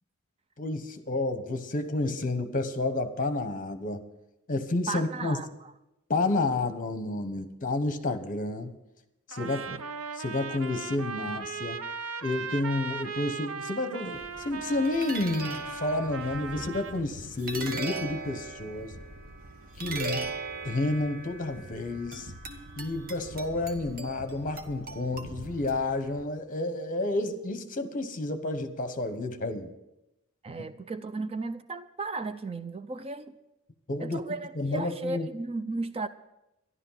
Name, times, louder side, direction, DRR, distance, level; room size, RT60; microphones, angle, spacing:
voice 1, 0.6-4.0 4.5-5.4 6.1-8.7 9.3-9.6 10.2-11.8 12.2-18.9 19.8-20.3 20.6-22.3 22.8-29.7 33.9-34.2 34.5-35.3, left 2 dB, 40° left, 1.1 m, -30 dB
voice 2, 4.9-5.7 9.4-9.8 30.4-33.4 34.0-36.1, right 3 dB, 25° right, 0.4 m, -35 dB
Trumpet, 9.3-17.0, right 5 dB, 70° right, 0.8 m, -38 dB
sound 1, 14.1-26.2, right 3 dB, 45° right, 1.2 m, -40 dB
13.0 x 11.0 x 5.7 m
head